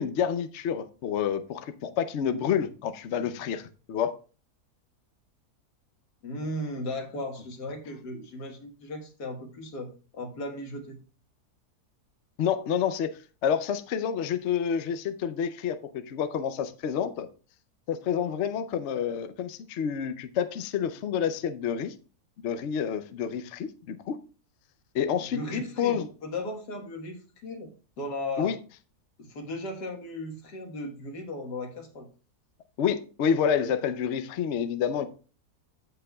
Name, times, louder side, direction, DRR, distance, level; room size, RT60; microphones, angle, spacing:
voice 1, 0.0-4.2 12.4-17.3 17.9-21.9 22.4-24.2 24.9-26.0 28.4-28.6 32.8-35.1, left 8 dB, 60° left, 10 dB, 0.8 m, -29 dB
voice 2, 6.2-11.0 25.3-27.7 28.0-28.5 29.2-32.1, left 1 dB, 85° left, 3 dB, 2.1 m, -36 dB
14.5 x 5.7 x 2.3 m, 0.36 s
omnidirectional pair, 1.7 m